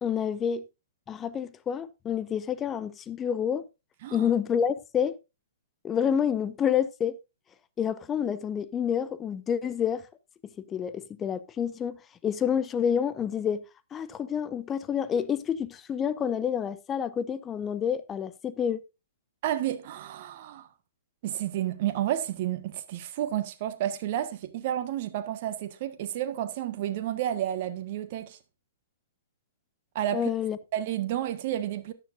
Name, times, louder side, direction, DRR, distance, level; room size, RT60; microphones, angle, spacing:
voice 1, 0.0-0.6 1.1-3.6 4.1-5.2 5.8-7.2 7.8-10.1 10.6-13.6 13.9-18.8 30.1-30.6, left 8 dB, 20° left, 0.8 m, -28 dB
voice 2, 19.4-20.7 21.2-28.4 29.9-30.2 30.7-31.9, right 12 dB, 45° right, 1.4 m, -31 dB
13.5 x 10.0 x 2.6 m
figure-of-eight pair, 120°, 0 cm